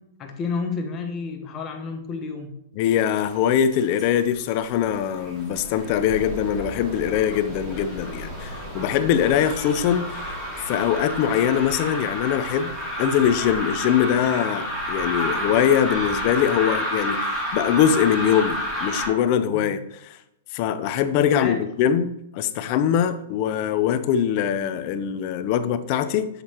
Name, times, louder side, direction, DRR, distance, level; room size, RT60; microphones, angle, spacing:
voice 1, 0.2-2.6 9.2-9.4 19.5-19.8 21.3-21.6, left 4 dB, 25° left, 3 dB, 1.1 m, -31 dB
voice 2, 2.8-10.3 10.7-12.7 13.0-19.8 20.1-20.2 20.5-26.3, left 9 dB, 40° left, 12 dB, 0.6 m, -22 dB
sound 1, 3.2-4.1 4.4-19.1, equal, 10° right, 2.8 m, -30 dB
8.0 x 6.6 x 3.0 m, 0.84 s
hypercardioid pair, 145°, 0 cm